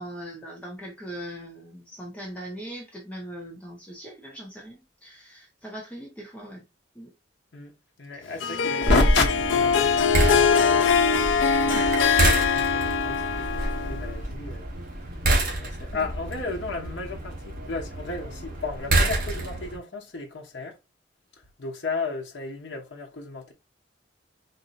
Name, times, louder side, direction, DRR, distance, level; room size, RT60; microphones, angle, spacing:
voice 1, 0.0-6.6 6.9-7.1 8.1-8.4 11.7-11.9 15.9-16.1, equal, 5° left, 1.1 m, -40 dB
voice 2, 8.0-10.9 11.6-14.7 15.6-20.8 21.6-23.5, left 3 dB, 70° left, 0.9 m, -31 dB
Harp, 8.4-14.2, left 6 dB, 85° left, 0.4 m, -22 dB
sound 1, 8.9-19.8, right 1 dB, 50° right, 1.2 m, -28 dB
4.1 x 2.7 x 2.5 m
head